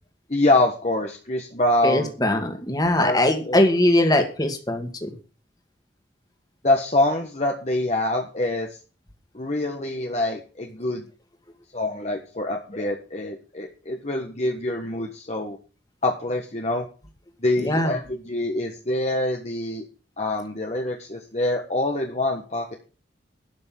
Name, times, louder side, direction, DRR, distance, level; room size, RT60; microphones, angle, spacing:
voice 1, 0.3-2.1 3.0-3.6 6.6-8.7 9.3-11.1 11.7-15.6 16.0-16.9 17.4-19.8 20.2-22.7, left 2 dB, 40° left, 2 dB, 1.5 m, -25 dB
voice 2, 1.8-5.1 17.6-17.9, left 1 dB, 20° left, 5 dB, 2.2 m, -21 dB
12.0 x 6.3 x 7.7 m, 0.36 s
head